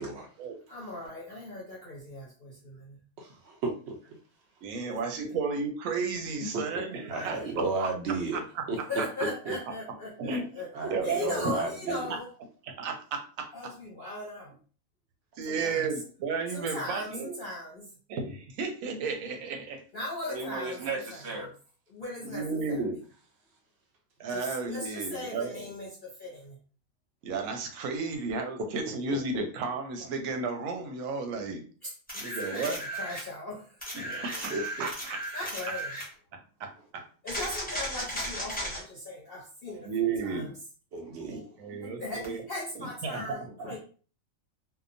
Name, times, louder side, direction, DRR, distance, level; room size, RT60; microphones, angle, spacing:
voice 1, 0.7-3.0 4.8-5.3 7.2-7.5 8.9-10.7 11.0-12.3 13.5-14.5 15.5-16.0 16.5-18.0 19.9-21.5 21.9-22.8 24.3-26.6 27.8-27.9 31.8-33.9 35.3-36.0 37.2-40.5 41.8-43.8, left 2 dB, 50° left, 0.7 m, -39 dB
voice 2, 3.2-4.0 6.7-6.8 7.1-8.4 8.7-8.8 9.5-9.6 10.7-12.0 20.3-21.5 29.1-29.4 34.5-34.9 40.9-41.5, right 3 dB, 65° right, 0.7 m, -34 dB
voice 3, 4.6-7.4 7.8-8.6 10.2-10.4 10.8-11.5 11.9-12.0 12.8-13.5 15.4-17.4 18.1-19.8 22.3-22.9 24.2-25.6 27.2-31.6 32.2-32.8 33.9-35.2 36.6-37.1 39.9-40.5 41.3-42.4 43.0-43.5, right 4 dB, 85° right, 1.0 m, -33 dB
sound 1, 32.1-33.3 33.8-36.1 37.3-38.8 42.2-42.3, equal, 10° left, 0.5 m, -36 dB
2.8 x 2.1 x 2.5 m
omnidirectional pair, 1.4 m